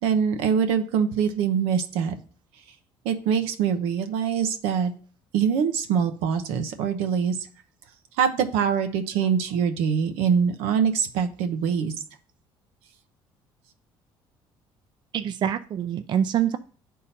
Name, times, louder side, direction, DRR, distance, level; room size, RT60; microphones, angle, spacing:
voice 1, 0.0-2.1 3.0-4.9 5.3-7.4 8.2-11.9, right 7 dB, 90° right, 7 dB, 0.8 m, -24 dB
voice 2, 15.1-16.6, right 9 dB, 50° right, 11 dB, 0.4 m, -25 dB
9.6 x 3.7 x 4.2 m, 0.42 s
cardioid pair, 100°, 10 cm